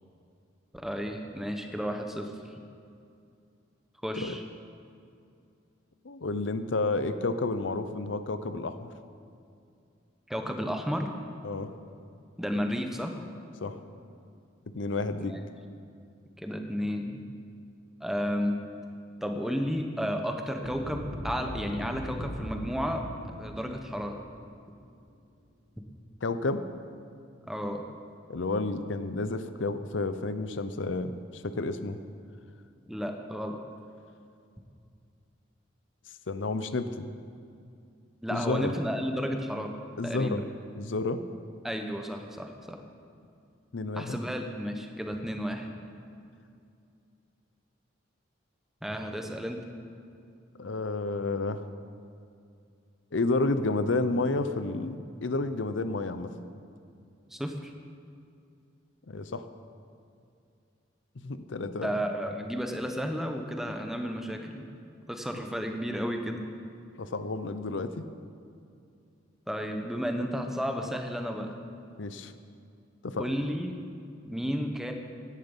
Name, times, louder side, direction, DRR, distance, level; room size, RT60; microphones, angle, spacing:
voice 1, 0.8-2.3 4.0-4.4 10.3-11.1 12.4-13.2 15.2-15.4 16.4-17.2 18.0-18.6 19.2-24.2 27.5-27.8 32.9-33.6 38.2-39.7 40.0-40.4 41.6-42.8 43.9-45.7 48.8-49.6 57.3-57.7 61.8-64.7 65.1-66.4 69.5-71.6 73.2-73.7 74.2-74.9, equal, ahead, 4 dB, 0.9 m, -32 dB
voice 2, 6.0-8.9 11.4-11.7 13.6-13.8 14.7-15.3 26.2-26.6 28.3-32.0 36.3-37.1 38.3-38.7 40.0-40.5 40.7-41.2 43.7-44.2 50.6-51.6 53.1-56.3 59.1-59.4 61.2-61.9 67.0-68.1 72.0-72.3 73.0-73.3, left 3 dB, 70° left, 10 dB, 0.7 m, -30 dB
sound 1, 20.6-24.9, equal, 85° right, 1.7 m, -40 dB
16.0 x 10.5 x 5.4 m, 2.4 s
head